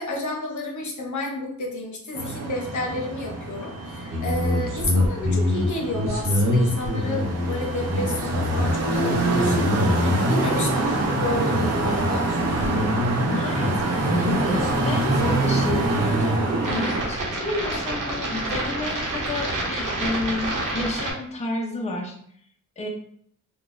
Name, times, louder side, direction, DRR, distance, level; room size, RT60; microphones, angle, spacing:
voice 1, 0.0-12.3, left 1 dB, 60° left, 0 dB, 0.8 m, -31 dB
sound 1, 2.2-17.0, right 2 dB, 50° right, 0.6 m, -26 dB
sound 2, 4.1-21.1, left 1 dB, 70° right, 0.9 m, -26 dB
voice 2, 13.3-22.1 22.8-22.9, left 2 dB, 20° left, 0 dB, 0.6 m, -31 dB
3.8 x 2.3 x 2.5 m, 0.64 s
cardioid pair, 85°, 33 cm